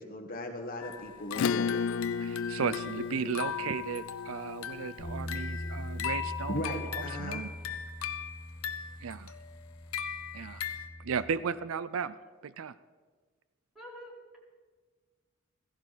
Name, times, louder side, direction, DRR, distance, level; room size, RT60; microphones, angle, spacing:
voice 1, 0.0-1.7 6.5-7.4, left 1 dB, 45° left, 4 dB, 1.3 m, -37 dB
sound 1, 0.8-10.9, left 8 dB, 90° left, 0.8 m, -39 dB
Acoustic guitar / Strum, 1.3-6.3, left 6 dB, 70° left, 0.3 m, -34 dB
voice 2, 2.2-7.5 9.0-9.3 10.3-10.7 11.0-12.1 12.4-12.7, right 6 dB, 70° right, 15 dB, 0.4 m, -35 dB
Bass guitar, 5.0-11.2, equal, 30° right, 2.7 m, -42 dB
voice 3, 13.7-14.4, equal, ahead, -5 dB, 4.0 m, -47 dB
16.0 x 16.0 x 4.1 m, 1.4 s
head